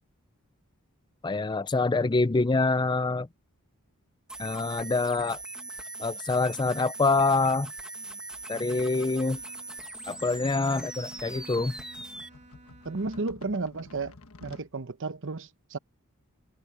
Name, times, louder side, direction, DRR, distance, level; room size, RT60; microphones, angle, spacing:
voice 1, 1.2-3.3 4.4-5.4 6.0-7.7 8.5-9.4 10.1-11.7, left 3 dB, 20° left, 0.5 m, -26 dB
sound 1, 4.3-12.3, right 2 dB, 5° right, 1.2 m, -41 dB
Bowed string instrument, 8.4-13.7, right 2 dB, 35° right, 3.8 m, -52 dB
sound 2, 9.1-14.7, left 3 dB, 70° left, 1.4 m, -52 dB
voice 2, 12.8-14.1 14.4-15.8, right 3 dB, 60° right, 0.9 m, -33 dB
head